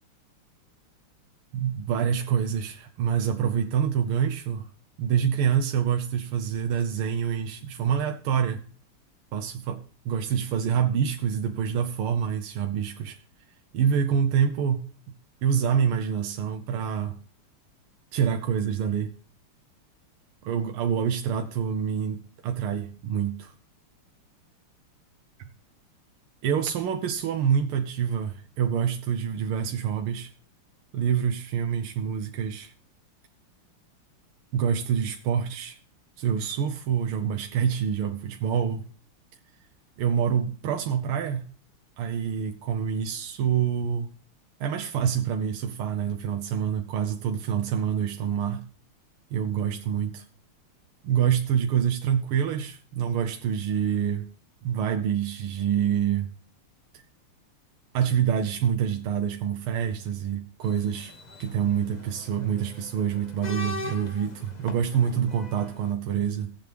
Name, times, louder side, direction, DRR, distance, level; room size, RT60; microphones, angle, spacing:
voice 1, 1.5-4.7 5.0-8.6 9.3-13.2 13.7-14.9 15.4-17.2 18.1-19.1 20.4-23.5 25.4-25.5 26.4-30.3 30.9-32.7 34.5-35.8 36.2-38.9 40.0-41.4 42.0-44.1 44.6-48.7 49.3-50.3 51.0-54.3 54.6-56.3 56.9-57.0 57.9-61.1 61.4-66.6, right 8 dB, 80° right, 1.7 m, -26 dB
sound 1, 60.6-65.9, left 3 dB, 35° left, 0.7 m, -41 dB
16.5 x 8.0 x 3.5 m
omnidirectional pair, 2.4 m